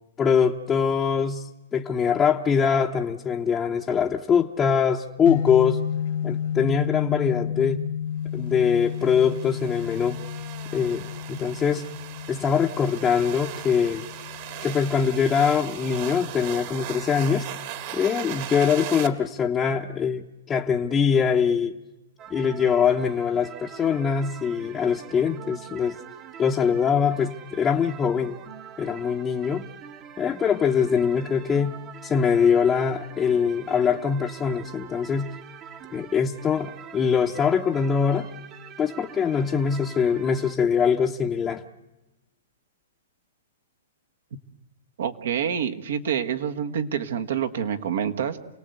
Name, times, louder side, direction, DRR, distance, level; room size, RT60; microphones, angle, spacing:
voice 1, 0.2-5.8 6.2-7.8 8.3-10.2 10.7-11.9 12.3-14.0 14.6-17.5 17.9-21.8 22.3-26.0 26.4-28.4 28.8-29.7 30.2-31.8 32.0-35.3 35.9-38.3 38.8-41.6, left 6 dB, 15° left, 0 dB, 0.9 m, -23 dB
sound 1, 5.3-17.3, left 8 dB, 60° left, 1.5 m, -32 dB
sound 2, 8.6-19.1, right 11 dB, 50° right, 1.9 m, -38 dB
sound 3, 22.2-40.6, right 9 dB, 30° right, 1.0 m, -44 dB
voice 2, 45.0-48.4, right 8 dB, 75° right, 6 dB, 1.6 m, -27 dB
29.0 x 18.0 x 8.1 m, 1.0 s
hypercardioid pair, 140°, 0 cm